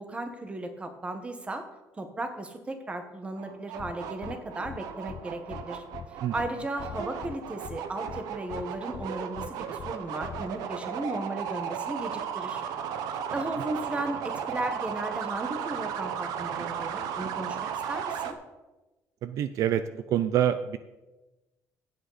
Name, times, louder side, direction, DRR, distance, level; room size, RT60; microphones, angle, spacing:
voice 1, 0.0-1.6 2.0-5.8 6.3-12.6 13.3-17.6 17.9-18.4, right 2 dB, 20° right, 7 dB, 1.4 m, -35 dB
sound 1, 3.4-18.3, right 8 dB, 85° right, 1.0 m, -35 dB
sound 2, 3.8-3.9 4.2-4.3 4.6-4.8 5.1-5.2 5.5-5.6 5.9-6.1 6.4-6.5 6.8-7.3 7.6-7.8 8.1-8.2 8.5-8.6 8.9-9.1 9.4-9.5 9.8-9.9 10.2-10.4, left 9 dB, 50° left, 0.6 m, -40 dB
voice 2, 19.2-20.8, right 10 dB, 60° right, 12 dB, 0.5 m, -26 dB
15.5 x 8.2 x 4.1 m, 1.1 s
cardioid pair, 135°, 6 cm